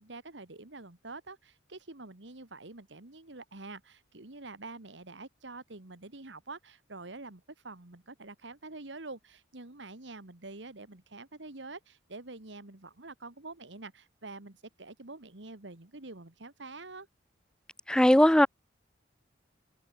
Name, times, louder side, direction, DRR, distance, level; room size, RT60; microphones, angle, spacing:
voice 1, 0.0-17.1, right 3 dB, 70° right, 2.0 m, -46 dB
voice 2, 17.9-18.5, left 1 dB, 5° left, 0.3 m, -19 dB
head